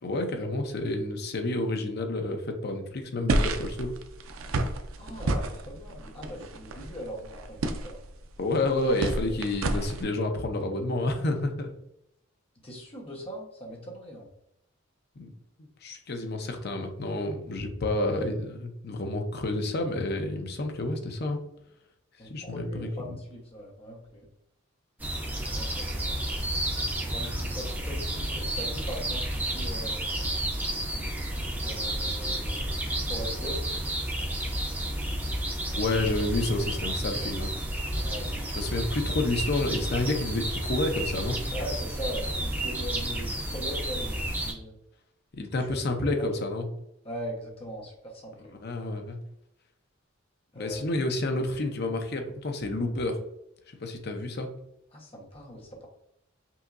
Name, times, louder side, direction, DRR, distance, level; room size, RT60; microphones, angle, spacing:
voice 1, 0.0-3.9 8.4-11.7 15.2-15.3 15.8-21.4 22.3-23.2 35.7-37.5 38.6-41.4 45.3-46.7 48.6-49.2 50.6-53.2 53.8-54.5, left 2 dB, 50° left, 5 dB, 0.7 m, -29 dB
sound 1, 3.3-10.0, right 2 dB, 80° right, 0.5 m, -31 dB
voice 2, 5.0-8.0 12.6-14.3 22.2-24.3 25.5-26.1 27.0-30.4 31.6-33.6 38.0-38.3 41.5-44.8 45.5-46.3 47.0-48.5 50.5-50.9 54.9-55.9, equal, 30° left, -3 dB, 1.1 m, -40 dB
sound 2, 25.0-44.5, right 1 dB, 10° right, 0.6 m, -31 dB
5.6 x 2.8 x 2.6 m, 0.81 s
head